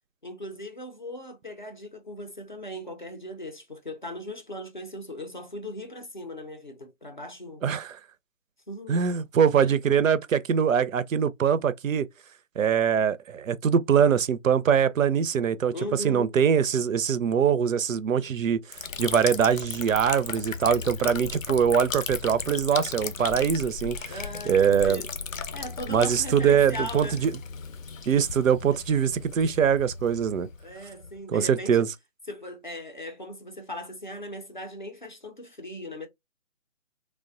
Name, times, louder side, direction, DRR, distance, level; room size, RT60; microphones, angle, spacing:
voice 1, 0.2-7.8 8.7-9.1 11.5-11.6 15.7-16.3 24.1-25.1 25.5-27.2 30.6-31.9 32.3-36.1, left 1 dB, 40° left, 0.4 m, -38 dB
voice 2, 7.6-7.9 8.9-12.1 12.6-15.7 16.0-18.6 19.0-24.2 24.5-25.0 25.9-27.3 28.1-30.5 31.3-31.9, right 7 dB, 80° right, 0.5 m, -23 dB
Liquid, 18.7-31.2, left 5 dB, 80° left, 0.6 m, -36 dB
3.2 x 2.1 x 2.3 m
figure-of-eight pair, 160°, 39 cm